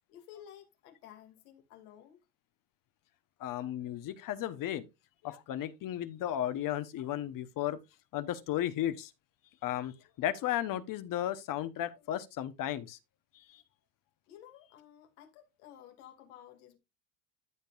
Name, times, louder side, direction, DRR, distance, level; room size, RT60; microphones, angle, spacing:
voice 1, 0.1-2.2 14.3-16.8, left 10 dB, 85° left, 2.6 m, -54 dB
voice 2, 3.4-4.9 5.2-7.8 8.1-9.1 9.6-13.0 13.3-13.6, left 12 dB, 50° left, 1.0 m, -34 dB
14.0 x 5.3 x 2.5 m
supercardioid pair, 125°, 44 cm